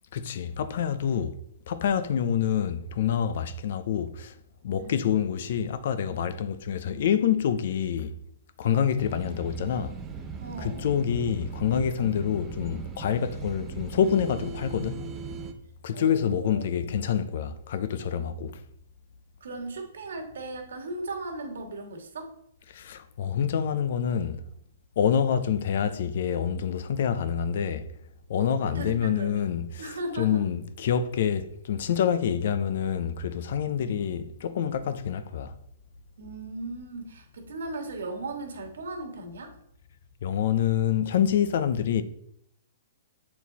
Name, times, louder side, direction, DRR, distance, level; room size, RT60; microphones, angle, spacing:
voice 1, 0.1-1.3 1.7-4.3 4.6-8.1 8.6-10.0 10.6-15.1 15.8-18.6 22.7-24.4 25.0-27.9 28.3-35.6 40.2-42.0, left 8 dB, 60° left, 0.7 m, -27 dB
sound 1, 9.0-15.5, right 5 dB, 15° right, 0.7 m, -39 dB
voice 2, 10.4-10.9 15.9-16.9 19.4-22.3 28.4-29.5 29.8-30.4 33.8-34.0 36.2-39.5, right 2 dB, 85° right, 1.8 m, -37 dB
7.5 x 4.5 x 4.1 m
hypercardioid pair, 150°, 0 cm